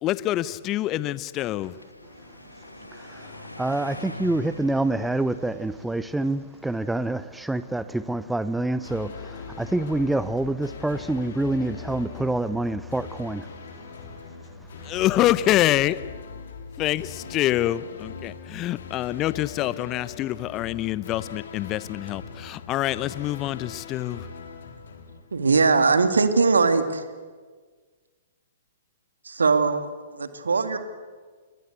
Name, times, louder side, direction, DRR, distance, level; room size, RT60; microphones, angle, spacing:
voice 1, 0.0-1.7 14.8-16.0 16.8-24.3, left 14 dB, 25° left, 17 dB, 0.9 m, -26 dB
sound 1, 1.3-7.4, left 1 dB, 85° left, 2.3 m, -43 dB
voice 2, 2.3-14.9, right 2 dB, 5° right, 14 dB, 0.7 m, -28 dB
sound 2, 8.8-25.9, left 5 dB, 60° left, 3.5 m, -41 dB
voice 3, 25.3-27.0 29.2-30.8, right 4 dB, 70° right, 9 dB, 2.3 m, -21 dB
28.5 x 22.5 x 8.2 m, 1.5 s
figure-of-eight pair, 110°, 0 cm